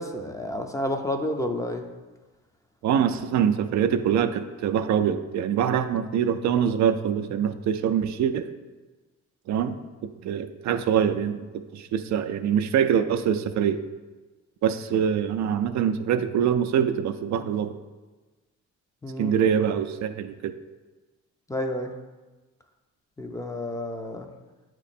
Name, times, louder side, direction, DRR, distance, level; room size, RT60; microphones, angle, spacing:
voice 1, 0.0-1.9 19.0-19.3 21.5-22.0 23.2-24.3, left 1 dB, 10° left, 4 dB, 0.5 m, -30 dB
voice 2, 2.8-8.5 9.5-13.8 14.6-17.8 19.2-20.6, right 8 dB, 65° right, 9 dB, 0.5 m, -24 dB
8.3 x 3.0 x 4.2 m, 1.2 s
cardioid pair, 90°, 30 cm